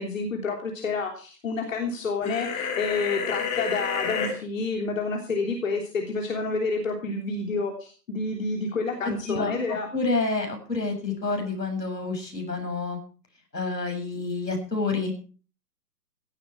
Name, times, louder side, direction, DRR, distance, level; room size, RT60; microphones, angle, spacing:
voice 1, 0.0-9.9, left 3 dB, 50° left, 2 dB, 3.4 m, -29 dB
sound 1, 2.2-4.3, left 6 dB, 15° left, 2.7 m, -29 dB
voice 2, 9.0-9.5 9.9-13.0 13.5-15.1, left 3 dB, 80° left, 4 dB, 7.3 m, -28 dB
17.0 x 13.0 x 4.7 m, 0.39 s
figure-of-eight pair, 135°, 49 cm